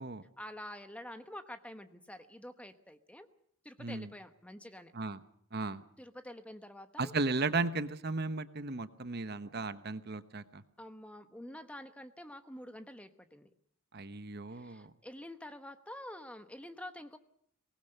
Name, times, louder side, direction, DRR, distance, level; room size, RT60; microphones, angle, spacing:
voice 1, 0.4-3.3 3.6-4.9 6.0-7.1 10.8-13.5 14.5-17.2, left 1 dB, 5° left, 9 dB, 1.1 m, -48 dB
voice 2, 3.8-4.1 4.9-5.2 5.5-5.8 7.0-10.6 13.9-14.9, right 3 dB, 50° right, 11 dB, 1.1 m, -35 dB
24.0 x 19.5 x 6.7 m, 0.68 s
head